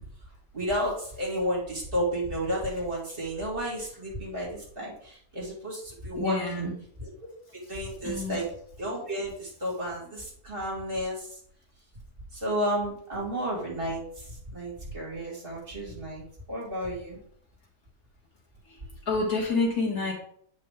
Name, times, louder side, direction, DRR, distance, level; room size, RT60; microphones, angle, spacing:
voice 1, 0.5-6.7 7.0-7.1 7.7-8.5 8.8-11.3 12.3-16.2 16.5-17.2, equal, 35° right, -4 dB, 2.7 m, -32 dB
voice 2, 6.2-6.7 8.0-8.4 18.7-18.8 19.1-20.1, left 3 dB, 70° left, -3 dB, 2.5 m, -28 dB
8.5 x 5.3 x 3.6 m, 0.63 s
omnidirectional pair, 1.6 m